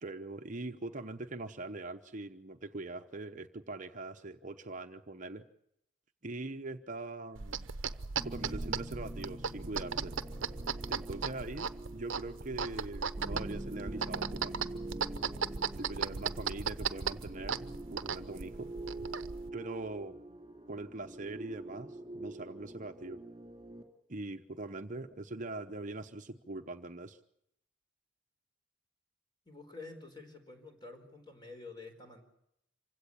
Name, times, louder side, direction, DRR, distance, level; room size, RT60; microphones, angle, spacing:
voice 1, 0.0-5.5 6.2-7.7 8.2-10.2 10.9-14.7 15.8-18.7 19.5-20.1 20.7-23.2 24.1-27.2, right 2 dB, 40° right, 6 dB, 0.9 m, -42 dB
sound 1, 7.3-19.5, right 6 dB, 75° right, 0.8 m, -37 dB
sound 2, 8.2-23.8, right 1 dB, 20° right, 3.0 m, -45 dB
voice 2, 29.4-32.2, left 3 dB, 20° left, 5 dB, 4.5 m, -49 dB
26.5 x 17.0 x 8.6 m, 0.79 s
head